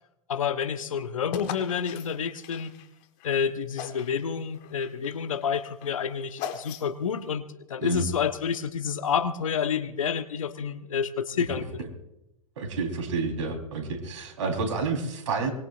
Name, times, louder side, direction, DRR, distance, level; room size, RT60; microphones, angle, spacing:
voice 1, 0.3-2.7 3.2-11.8, left 7 dB, 70° left, 10 dB, 1.2 m, -29 dB
sound 1, 1.3-3.3 3.8-4.2 4.5-7.1, left 9 dB, 40° left, 1.6 m, -39 dB
voice 2, 12.6-15.5, right 4 dB, 60° right, 4 dB, 4.1 m, -29 dB
24.0 x 21.0 x 2.6 m, 0.91 s
figure-of-eight pair, 100°, 18 cm